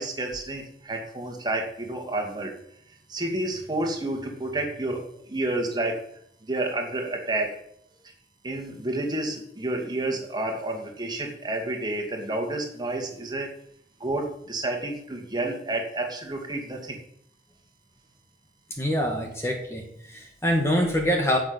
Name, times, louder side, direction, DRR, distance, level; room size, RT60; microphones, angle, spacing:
voice 1, 0.0-2.5 2.9-6.0 6.4-7.6 8.4-13.5 14.0-17.0, right 2 dB, 25° right, 2 dB, 2.3 m, -30 dB
voice 2, 18.8-21.4, equal, 15° left, 2 dB, 1.6 m, -25 dB
10.5 x 6.6 x 9.1 m, 0.71 s
head